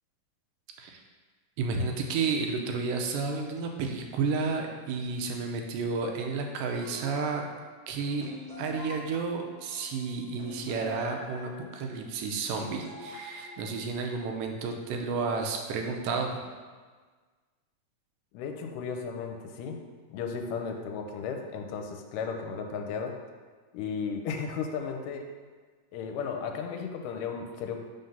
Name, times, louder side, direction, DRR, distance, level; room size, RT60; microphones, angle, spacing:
voice 1, 1.6-7.5 7.9-8.3 8.6-16.4, right 4 dB, 90° right, 3 dB, 2.3 m, -31 dB
sound 1, 6.8-14.5, left 2 dB, 55° right, 1.1 m, -46 dB
voice 2, 18.3-19.8 20.1-23.2 23.7-25.3 25.9-27.8, left 6 dB, 80° left, 4 dB, 2.1 m, -35 dB
5.2 x 3.8 x 5.4 m, 1.5 s
omnidirectional pair, 3.8 m